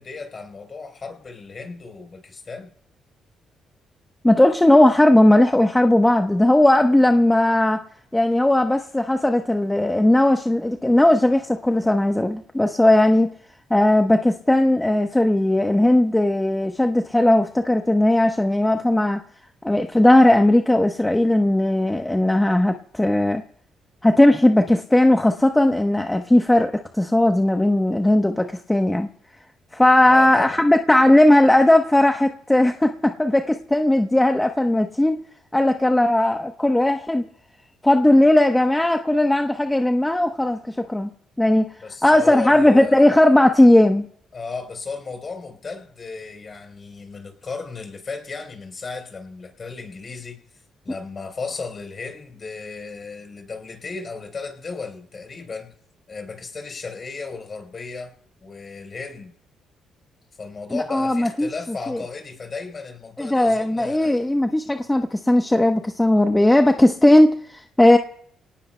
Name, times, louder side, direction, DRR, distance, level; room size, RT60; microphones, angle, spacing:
voice 1, 0.0-2.7 30.1-30.6 41.8-43.1 44.3-50.4 50.8-55.7 56.1-58.1 58.4-59.3 60.4-64.2, left 4 dB, 40° left, 5 dB, 3.9 m, -35 dB
voice 2, 4.2-7.8 8.1-13.3 13.7-19.2 19.6-23.4 24.0-29.1 29.7-35.2 35.5-37.2 37.8-41.1 41.4-44.1 60.7-61.5 61.9-62.0 63.2-68.0, left 1 dB, 10° left, 5 dB, 0.9 m, -17 dB
28.0 x 18.5 x 2.2 m, 0.64 s
cardioid pair, 90°, 0 cm